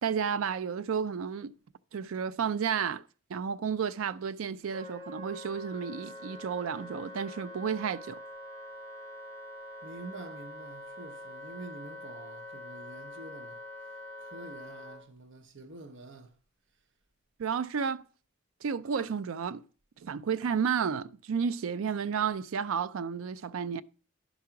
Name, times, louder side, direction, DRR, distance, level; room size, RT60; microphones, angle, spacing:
voice 1, 0.0-1.5 1.9-3.0 3.3-8.2 17.4-18.0 18.6-19.6 20.0-23.8, right 6 dB, 75° right, 0.4 m, -32 dB
Wind instrument woodwind instrument, 4.7-15.0, left 1 dB, 40° right, 3.8 m, -45 dB
voice 2, 9.8-13.6 14.2-16.3, right 2 dB, 60° right, 0.9 m, -47 dB
11.0 x 4.8 x 5.8 m
head